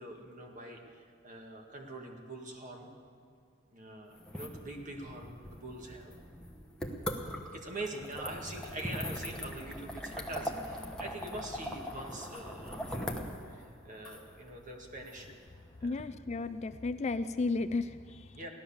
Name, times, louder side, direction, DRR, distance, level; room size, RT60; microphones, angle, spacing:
voice 1, 0.0-2.9 3.7-6.2 7.5-15.4 15.8-15.9 18.3-18.5, right 2 dB, 40° right, 2 dB, 1.9 m, -44 dB
sound 1, 4.1-16.0, equal, 5° left, 1.0 m, -41 dB
voice 2, 15.8-18.3, left 3 dB, 35° left, 11 dB, 0.4 m, -34 dB
16.0 x 12.0 x 7.1 m, 2.2 s
head